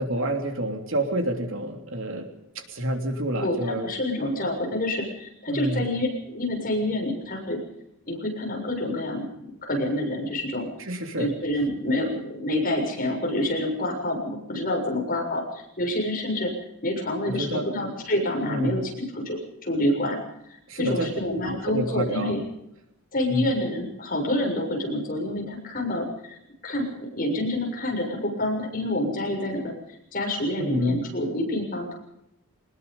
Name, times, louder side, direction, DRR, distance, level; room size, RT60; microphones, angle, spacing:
voice 1, 0.0-2.3 2.5-3.9 5.5-5.8 10.8-11.3 17.2-17.6 18.5-18.8 20.7-21.1 21.5-22.4 23.3-23.5 30.6-31.0, right 1 dB, 60° right, 5 dB, 3.2 m, -28 dB
voice 2, 3.4-7.6 8.1-9.2 9.6-10.7 11.2-16.5 16.8-20.2 20.8-22.4 23.1-26.4 26.6-29.7 30.1-32.0, left 1 dB, 40° left, 1 dB, 7.0 m, -27 dB
24.0 x 20.5 x 5.4 m, 0.80 s
head